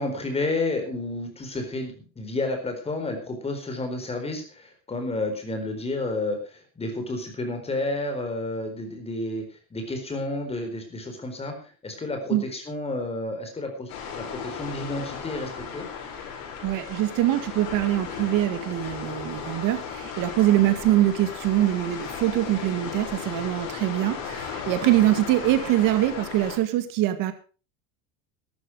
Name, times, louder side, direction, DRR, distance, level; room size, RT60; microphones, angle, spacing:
voice 1, 0.0-15.9, left 2 dB, 15° left, 5 dB, 4.3 m, -31 dB
sound 1, 13.9-26.6, left 7 dB, 60° left, 6.1 m, -36 dB
voice 2, 16.6-27.3, right 14 dB, 50° right, 10 dB, 2.1 m, -23 dB
13.5 x 12.5 x 4.8 m, 0.36 s
supercardioid pair, 150°, 41 cm